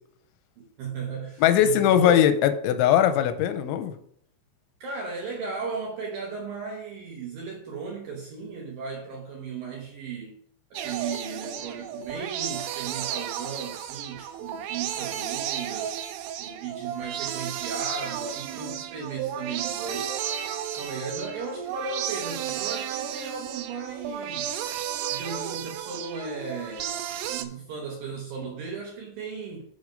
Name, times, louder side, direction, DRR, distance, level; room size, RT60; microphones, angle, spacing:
voice 1, 0.6-2.2 4.8-10.3 10.7-24.6 25.1-27.0 27.3-29.7, right 5 dB, 70° right, 2.2 m, -36 dB
voice 2, 1.4-3.9, left 10 dB, 85° left, 2.9 m, -20 dB
sound 1, 10.8-27.5, right 9 dB, 90° right, 2.4 m, -33 dB
7.2 x 6.4 x 5.2 m
omnidirectional pair, 5.5 m